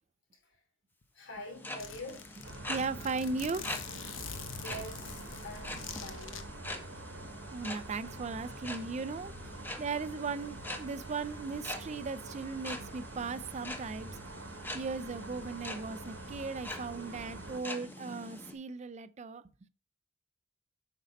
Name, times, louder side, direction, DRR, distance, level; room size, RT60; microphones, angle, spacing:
voice 1, 0.3-0.6 1.1-2.3 4.6-6.5, left 1 dB, 65° left, 3.2 m, -46 dB
Zipper (clothing), 1.0-1.1 1.3-1.4 1.8-6.4, left 6 dB, 85° left, 1.0 m, -45 dB
sound 1, 1.4-18.5, left 1 dB, 10° left, 1.1 m, -45 dB
sound 2, 2.4-17.6, right 2 dB, 85° right, 1.0 m, -46 dB
voice 2, 2.7-3.9 7.5-14.1 14.7-19.4, right 4 dB, 35° right, 0.4 m, -37 dB
8.3 x 5.3 x 3.9 m
head